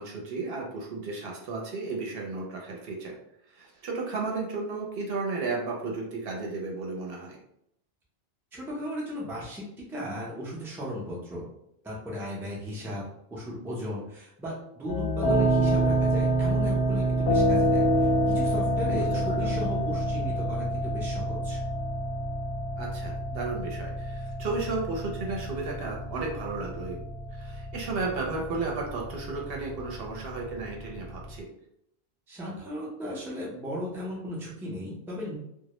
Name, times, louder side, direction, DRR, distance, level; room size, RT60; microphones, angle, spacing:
voice 1, 0.0-3.2 3.5-7.4 18.9-19.5 22.8-27.0 27.3-31.5, right 3 dB, 70° right, -1 dB, 0.8 m, -34 dB
voice 2, 8.5-11.4 11.8-13.0 13.3-21.6 32.3-35.4, left 1 dB, 5° right, -5 dB, 0.4 m, -36 dB
sound 1, 14.9-31.4, right 1 dB, 85° left, 0.8 m, -28 dB
2.1 x 2.0 x 2.9 m, 0.76 s
omnidirectional pair, 1.1 m